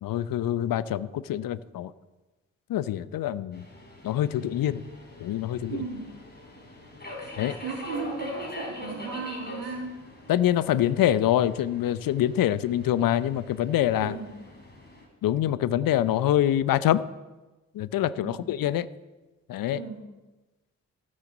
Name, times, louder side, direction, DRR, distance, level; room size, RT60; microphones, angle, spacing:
voice 1, 0.0-1.9 2.7-3.6 4.0-4.8 5.2-5.8 7.4-7.6 10.3-14.2 15.2-17.0 17.7-18.9 19.5-19.8, left 12 dB, 55° left, 17 dB, 0.7 m, -25 dB
Subway metro underground, 3.5-15.1, left 2 dB, 25° left, 3.9 m, -43 dB
voice 2, 5.7-6.1 7.6-10.1 14.0-14.4 18.2-18.4 19.7-20.1, right 4 dB, 75° right, 2 dB, 2.3 m, -36 dB
19.0 x 6.4 x 4.0 m, 1.1 s
hypercardioid pair, 40°, 41 cm